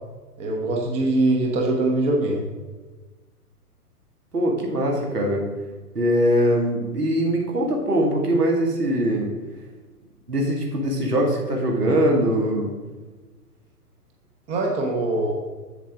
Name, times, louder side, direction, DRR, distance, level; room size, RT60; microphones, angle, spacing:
voice 1, 0.4-2.4 14.5-15.3, right 2 dB, 15° right, 0 dB, 0.8 m, -22 dB
voice 2, 4.3-5.4 5.9-9.3 10.3-12.7, equal, 75° right, 0 dB, 2.2 m, -22 dB
7.5 x 7.3 x 3.6 m, 1.3 s
figure-of-eight pair, 120°, 47 cm